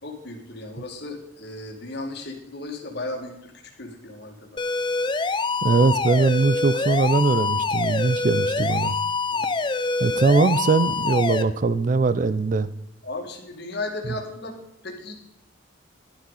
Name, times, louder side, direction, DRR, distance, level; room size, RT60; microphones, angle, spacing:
voice 1, 0.0-4.6 9.3-9.5 13.0-14.6 14.8-15.1, left 2 dB, 55° left, 1 dB, 2.1 m, -35 dB
sound 1, 4.6-11.4, left 3 dB, 25° left, 0.5 m, -25 dB
voice 2, 5.6-8.9 10.0-12.7, right 3 dB, 40° right, 15 dB, 0.4 m, -21 dB
11.5 x 11.5 x 4.1 m, 0.80 s
head